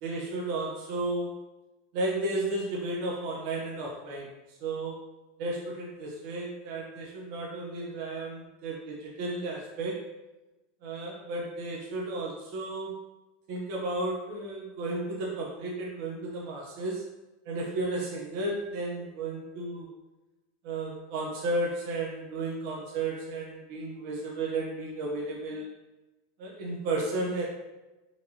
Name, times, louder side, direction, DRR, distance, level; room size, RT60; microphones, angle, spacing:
voice 1, 0.0-1.3 1.9-5.0 5.4-10.0 10.8-13.0 13.5-17.1 17.4-19.9 20.6-25.7 26.4-27.4, right 2 dB, 60° right, -3 dB, 0.9 m, -33 dB
4.3 x 2.7 x 2.9 m, 1.1 s
hypercardioid pair, 110°, 0 cm